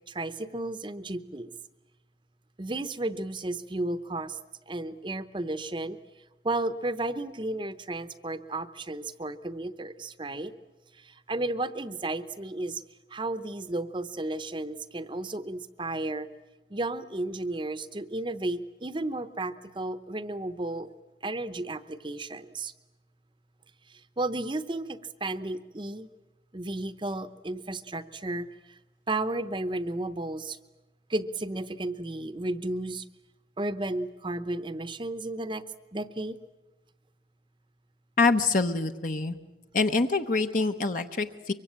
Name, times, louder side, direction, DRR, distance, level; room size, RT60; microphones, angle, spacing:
voice 1, 0.1-1.5 2.6-4.4 4.7-6.0 6.4-10.5 10.9-12.8 13.1-16.3 16.7-20.9 21.2-22.7 23.9-26.1 26.5-28.8 29.1-30.6 31.1-33.1 33.6-35.6 35.9-36.4, right 2 dB, 25° right, 12 dB, 0.8 m, -33 dB
voice 2, 38.2-39.4 39.7-41.5, left 3 dB, 45° left, 7 dB, 0.9 m, -25 dB
24.0 x 24.0 x 8.6 m, 1.1 s
head